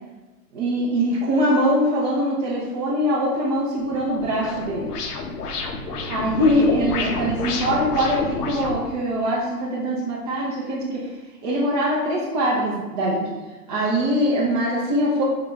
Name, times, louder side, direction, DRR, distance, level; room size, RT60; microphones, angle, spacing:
voice 1, 0.5-4.9 6.1-8.2 8.5-11.1 11.4-13.3 13.7-15.2, equal, 25° right, -6 dB, 0.4 m, -22 dB
sound 1, 3.8-8.8, left 4 dB, 80° left, 0.7 m, -29 dB
3.7 x 2.2 x 3.5 m, 1.2 s
hypercardioid pair, 120°, 46 cm